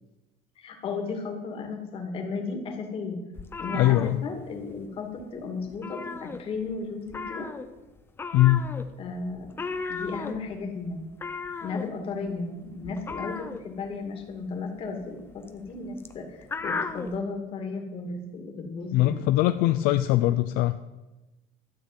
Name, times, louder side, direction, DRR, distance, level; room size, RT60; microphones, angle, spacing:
voice 1, 0.6-3.2 3.6-7.5 9.0-9.5 9.9-11.0 11.6-19.2, left 4 dB, 35° left, 3 dB, 2.3 m, -34 dB
sound 1, 3.4-4.9 5.1-5.4 5.7-6.8 7.1-17.2, left 4 dB, 15° left, 0.7 m, -36 dB
voice 2, 3.7-4.2 8.3-8.7 18.9-20.8, left 15 dB, 65° left, 10 dB, 0.5 m, -21 dB
12.5 x 6.7 x 9.0 m, 1.1 s
cardioid pair, 170°, 16 cm